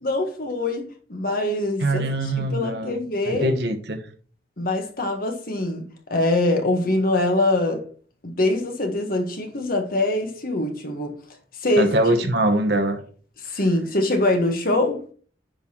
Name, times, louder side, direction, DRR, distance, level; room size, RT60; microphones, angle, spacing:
voice 1, 0.0-3.5 4.6-7.8 8.2-11.2 11.6-11.9 13.4-15.0, left 2 dB, 55° left, 1.6 m, -23 dB
voice 2, 1.8-3.0 3.3-4.0 11.8-13.0, right 1 dB, 65° right, 1.2 m, -22 dB
10.0 x 3.9 x 4.4 m
head